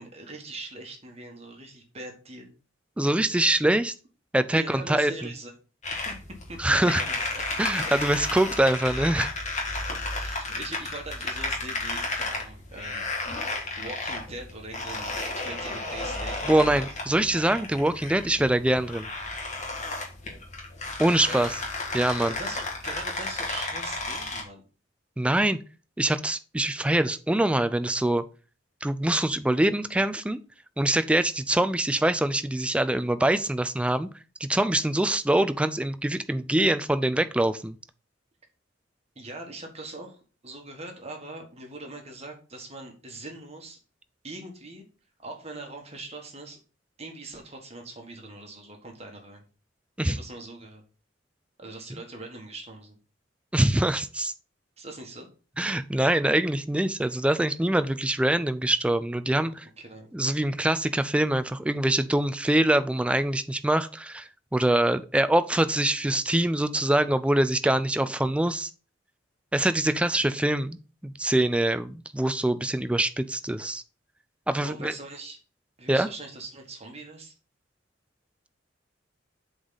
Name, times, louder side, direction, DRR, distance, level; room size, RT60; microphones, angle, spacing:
voice 1, 0.0-2.5 4.5-5.5 5.9-6.2 6.5-7.4 9.9-16.8 21.2-21.5 22.2-24.6 39.1-40.2 40.4-43.8 44.2-44.8 45.2-46.6 47.0-49.4 50.0-50.8 51.6-53.0 54.8-55.3 59.8-60.1 74.6-75.4 75.8-77.3, right 2 dB, 35° right, 2 dB, 1.6 m, -41 dB
voice 2, 3.0-3.9 4.3-5.1 6.6-7.0 7.6-9.3 16.5-19.1 21.0-21.5 21.9-22.3 25.2-25.6 26.0-28.2 28.8-30.4 30.8-34.1 34.4-37.8 50.0-50.2 53.5-54.3 55.6-59.7 60.1-68.7 69.5-70.8 71.0-73.8 74.5-74.9 75.9-76.1, right 1 dB, 5° right, 11 dB, 0.4 m, -24 dB
sound 1, 5.8-24.4, left 2 dB, 40° left, 1.9 m, -33 dB
7.8 x 4.1 x 3.9 m, 0.35 s
head